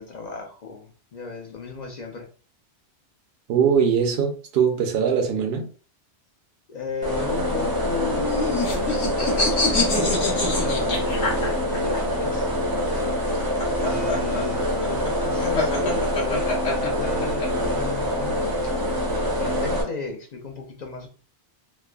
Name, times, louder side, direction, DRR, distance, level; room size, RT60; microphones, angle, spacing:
voice 1, 0.0-2.3 6.7-12.5 12.9-13.0 13.7-16.4 16.8-18.7 19.4-21.1, left 4 dB, 50° left, 0.6 m, -35 dB
voice 2, 3.5-5.7, right 7 dB, 70° right, 0.8 m, -21 dB
sound 1, 7.0-19.8, equal, 25° right, 0.5 m, -25 dB
sound 2, 8.0-12.0 13.2-17.5, left 3 dB, 85° left, 1.3 m, -26 dB
3.1 x 2.0 x 2.3 m
omnidirectional pair, 1.2 m